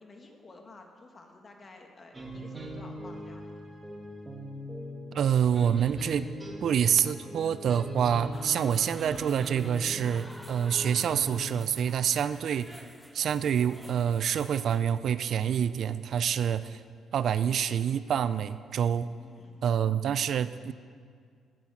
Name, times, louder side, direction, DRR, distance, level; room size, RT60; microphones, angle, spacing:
voice 1, 0.0-3.6 19.0-19.6, left 3 dB, 35° left, 3 dB, 1.8 m, -52 dB
sound 1, 2.1-11.4, equal, 20° right, 1.9 m, -41 dB
voice 2, 5.1-6.3 6.6-12.8 13.1-16.8 17.1-19.1 19.6-20.7, right 8 dB, 65° right, 14 dB, 0.4 m, -27 dB
sound 2, 8.3-14.8, equal, 5° right, 0.9 m, -50 dB
9.8 x 9.3 x 7.5 m, 2.1 s
cardioid pair, 90°, 0 cm